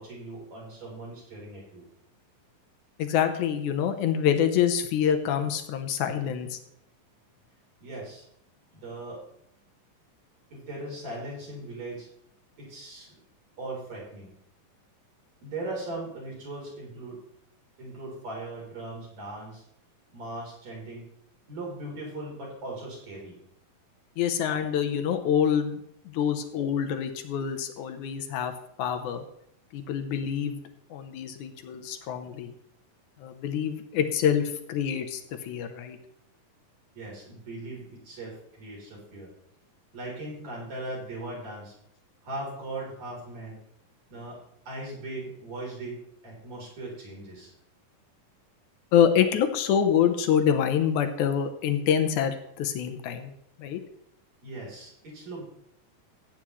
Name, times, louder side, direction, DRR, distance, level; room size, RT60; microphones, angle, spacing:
voice 1, 0.0-1.8 7.8-8.2 8.7-9.2 10.5-12.1 12.6-13.2 13.6-14.3 15.4-17.2 17.8-19.6 20.1-21.0 21.5-23.4 36.9-39.3 39.9-41.7 42.2-43.6 44.1-44.4 44.6-47.5 54.4-55.4, right 2 dB, 50° right, -4 dB, 5.1 m, -39 dB
voice 2, 3.0-6.6 24.2-25.8 26.1-28.5 28.8-29.2 29.7-30.6 30.9-32.5 33.2-36.0 48.9-53.3 53.6-53.8, left 8 dB, 70° left, 7 dB, 2.1 m, -26 dB
15.5 x 9.1 x 3.2 m, 0.74 s
omnidirectional pair, 4.1 m